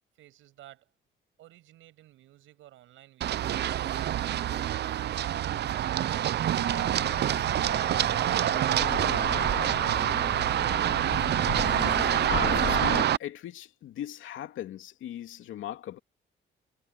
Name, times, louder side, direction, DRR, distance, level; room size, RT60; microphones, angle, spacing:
voice 1, 0.2-0.9 1.4-5.7, right 14 dB, 85° right, 6.4 m, -54 dB
Run, 3.2-13.2, right 11 dB, 60° right, 0.6 m, -26 dB
sound 1, 6.5-13.0, left 9 dB, 65° left, 2.8 m, -37 dB
voice 2, 12.3-16.0, left 12 dB, 80° left, 2.7 m, -39 dB
cardioid pair, 90°, 20 cm